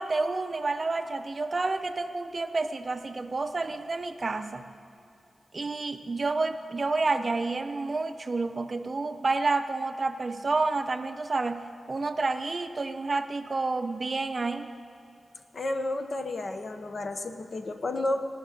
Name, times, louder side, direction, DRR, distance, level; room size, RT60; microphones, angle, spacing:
voice 1, 0.0-4.6 5.5-14.7, right 3 dB, 35° right, 8 dB, 0.5 m, -29 dB
voice 2, 15.5-18.3, left 2 dB, 45° left, 6 dB, 0.7 m, -31 dB
18.0 x 6.1 x 8.4 m, 2.6 s
wide cardioid pair, 140°, 0 cm